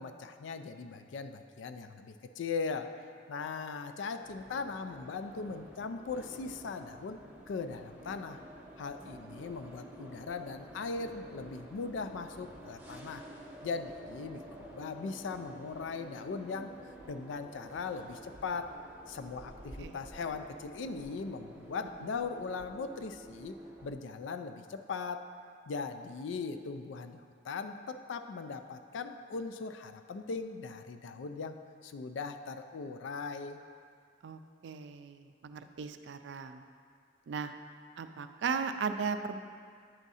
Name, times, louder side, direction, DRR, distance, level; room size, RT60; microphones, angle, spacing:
voice 1, 0.0-2.9 3.3-7.2 7.5-8.4 8.8-13.2 13.6-16.7 17.1-18.7 19.1-25.3 25.7-33.6, left 4 dB, 80° left, 9 dB, 0.4 m, -39 dB
sound 1, 4.2-23.9, right 1 dB, 10° right, 0.7 m, -50 dB
voice 2, 34.2-36.6 37.3-37.5 38.0-39.4, right 5 dB, 70° right, 9 dB, 0.3 m, -37 dB
8.9 x 3.6 x 4.1 m, 2.1 s
head